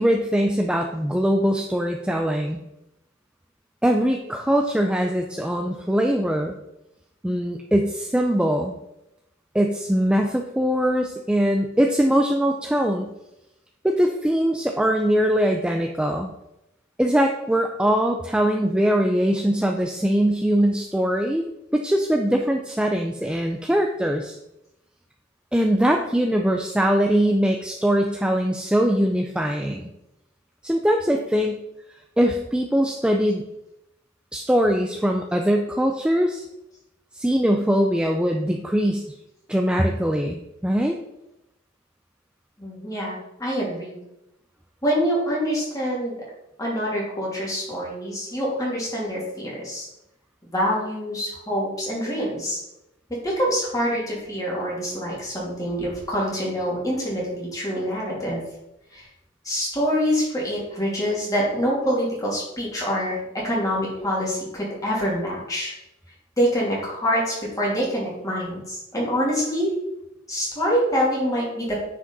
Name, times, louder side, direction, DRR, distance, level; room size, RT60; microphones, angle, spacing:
voice 1, 0.0-2.6 3.8-6.5 7.2-8.7 9.5-13.1 13.8-16.3 17.0-21.4 21.7-24.4 25.5-29.9 30.6-31.6 32.2-33.5 34.3-36.5 37.1-39.1 39.5-40.9, equal, 5° right, 3 dB, 0.4 m, -22 dB
voice 2, 42.6-44.0 44.8-46.1 46.6-49.9 50.5-52.6 53.2-58.4 58.9-59.0 59.4-65.7 66.4-69.7 70.3-71.8, equal, 20° left, -5 dB, 3.0 m, -25 dB
9.5 x 5.1 x 4.0 m, 0.88 s
head